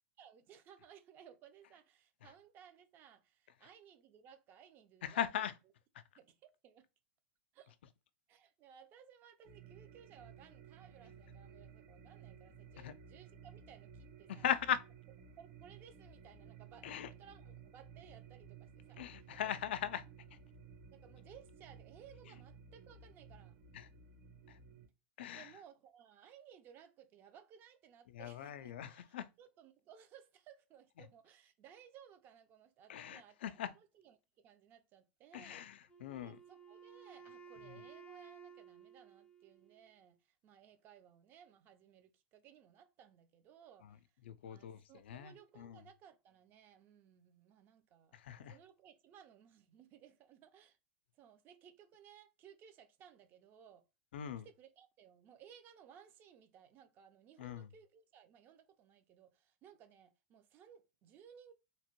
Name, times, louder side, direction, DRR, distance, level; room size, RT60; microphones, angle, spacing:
voice 1, 0.2-5.2 6.2-6.9 7.5-7.7 8.3-14.4 15.4-19.0 20.9-23.5 25.3-29.0 29.4-35.6 36.2-44.0 44.4-48.2 48.5-50.8 51.1-53.8 54.4-61.5, right 8 dB, 35° right, 0.5 m, -60 dB
voice 2, 5.0-5.5 5.9-6.0 12.8-12.9 14.3-14.8 16.8-17.1 19.0-20.1 20.3-20.4 23.7-23.9 24.5-24.6 25.2-25.5 28.1-29.3 32.9-33.7 35.3-36.4 37.6-37.8 43.8-44.0 44.2-45.8 48.1-48.6 54.1-54.5 57.4-57.7, left 10 dB, 85° left, 0.3 m, -40 dB
sound 1, 9.4-24.9, right 6 dB, 60° right, 1.2 m, -56 dB
Wind instrument woodwind instrument, 35.9-39.9, right 6 dB, 15° left, 0.5 m, -56 dB
2.8 x 2.1 x 3.0 m
supercardioid pair, 135°, 6 cm